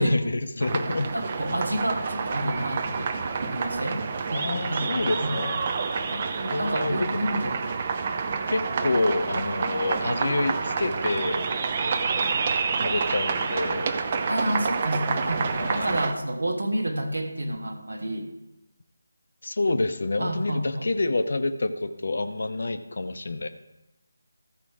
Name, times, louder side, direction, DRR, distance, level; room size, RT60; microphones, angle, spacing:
voice 1, 0.0-1.1 4.3-5.6 6.5-7.1 8.5-11.4 12.7-13.9 15.5-15.9 19.4-23.5, left 2 dB, 55° left, 9 dB, 0.8 m, -27 dB
sound 1, 0.6-16.1, right 5 dB, 30° right, 0.6 m, -28 dB
voice 2, 0.8-3.1 3.4-4.9 5.2-5.4 6.1-7.6 14.3-18.3 20.2-20.9, right 1 dB, 70° right, 6 dB, 1.4 m, -29 dB
14.0 x 5.0 x 4.7 m, 0.94 s
figure-of-eight pair, 160°, 0 cm